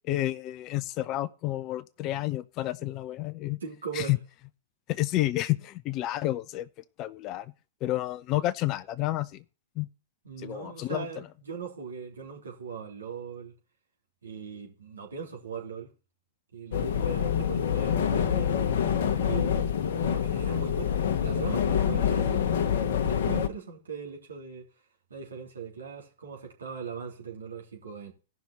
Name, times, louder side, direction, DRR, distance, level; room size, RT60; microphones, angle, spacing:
voice 1, 0.1-3.6 3.9-4.2 4.9-6.7 7.0-7.5 7.8-9.4 9.8-9.9 10.4-11.1, left 16 dB, 35° left, 0.7 m, -30 dB
voice 2, 3.6-4.1 10.2-13.5 14.2-15.9 16.5-18.8 19.2-22.4 23.0-24.7 25.1-28.1, right 6 dB, 75° right, 3.4 m, -39 dB
sound 1, 16.7-23.5, left 8 dB, 55° left, 1.2 m, -26 dB
17.0 x 6.0 x 4.1 m
figure-of-eight pair, 105°, 0 cm